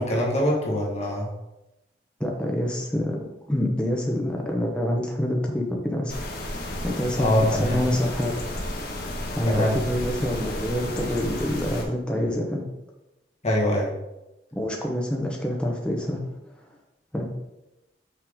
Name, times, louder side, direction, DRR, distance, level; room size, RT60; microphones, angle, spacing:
voice 1, 0.0-1.3 7.2-7.8 9.4-9.8 13.4-13.9, left 1 dB, 40° left, -3 dB, 1.4 m, -23 dB
voice 2, 2.2-3.2 3.5-6.1 6.8-8.3 9.3-12.6 14.5-16.2 17.1-17.3, equal, 5° left, -1 dB, 0.8 m, -26 dB
sound 1, 6.1-11.8, left 1 dB, 60° left, 1.3 m, -32 dB
5.8 x 5.5 x 3.6 m, 0.97 s
head